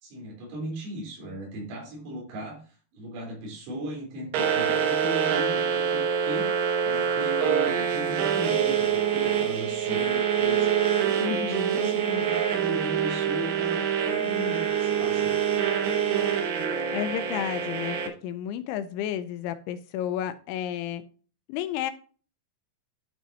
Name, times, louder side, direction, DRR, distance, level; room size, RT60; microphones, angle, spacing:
voice 1, 0.0-2.6 2.9-15.3, right 1 dB, 85° right, -1 dB, 6.7 m, -37 dB
sound 1, 4.3-18.1, right 8 dB, 70° right, 2.6 m, -25 dB
voice 2, 11.2-11.8 16.9-21.0 21.5-21.9, left 10 dB, 85° left, 11 dB, 2.6 m, -32 dB
12.5 x 6.1 x 2.8 m, 0.39 s
omnidirectional pair, 5.9 m